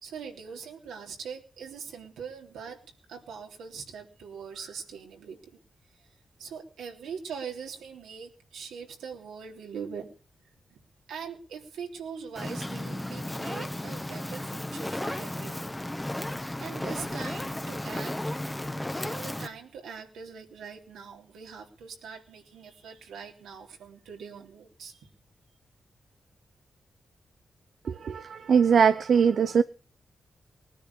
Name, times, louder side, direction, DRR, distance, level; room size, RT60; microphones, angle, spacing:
voice 1, 0.0-2.8 3.1-5.4 6.4-10.1 10.7-10.8 11.1-15.8 16.6-18.2 19.0-25.1, right 6 dB, 85° right, 3.5 m, -42 dB
Fire, 12.4-19.5, left 1 dB, 15° left, 1.6 m, -34 dB
voice 2, 27.9-29.6, right 6 dB, 70° right, 0.8 m, -21 dB
20.0 x 10.0 x 7.0 m
supercardioid pair, 40°, 0 cm